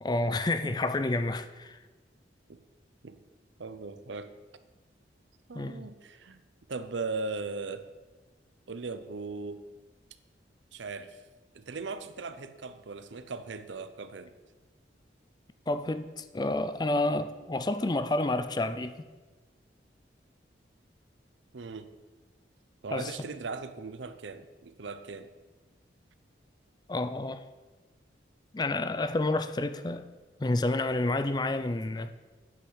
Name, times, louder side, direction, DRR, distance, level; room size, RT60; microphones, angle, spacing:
voice 1, 0.0-1.8 5.5-5.9 15.7-19.1 22.9-23.1 26.9-27.4 28.5-30.1 30.4-32.1, left 2 dB, 25° left, 0.4 m, -29 dB
voice 2, 3.6-4.3 5.5-6.4 6.7-7.9 8.7-9.6 10.7-11.2 11.5-14.3 21.5-21.9 22.8-25.3, right 4 dB, 85° right, 0.7 m, -38 dB
9.4 x 5.7 x 8.1 m
head